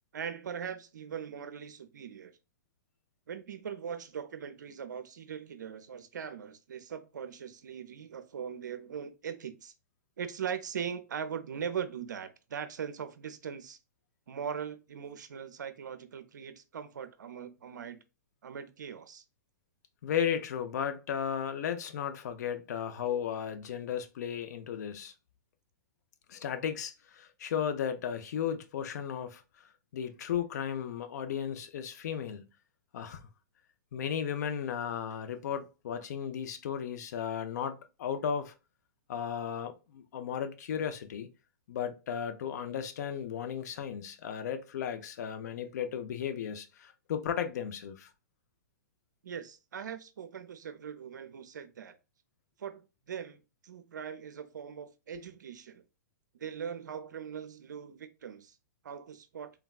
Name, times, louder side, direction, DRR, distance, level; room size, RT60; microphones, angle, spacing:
voice 1, 0.1-2.3 3.3-9.7 10.2-13.8 14.3-18.0 18.4-19.2 49.2-52.0 52.6-55.8 56.3-58.6 58.8-59.5, right 7 dB, 80° right, 0.5 m, -40 dB
voice 2, 20.0-25.1 26.3-32.4 32.9-33.2 33.9-38.5 39.1-41.3 41.7-48.1, left 8 dB, 65° left, 0.5 m, -35 dB
3.3 x 2.2 x 2.3 m
hypercardioid pair, 120°, 10 cm